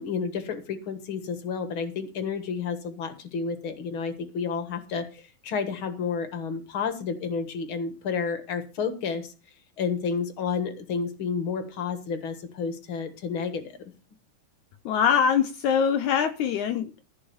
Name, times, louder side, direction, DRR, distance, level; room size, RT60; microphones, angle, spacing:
voice 1, 0.0-9.3 9.8-13.8, left 5 dB, 50° left, 1.6 m, -31 dB
voice 2, 14.9-17.0, left 7 dB, 75° left, 1.8 m, -23 dB
14.5 x 5.5 x 6.9 m
omnidirectional pair, 4.0 m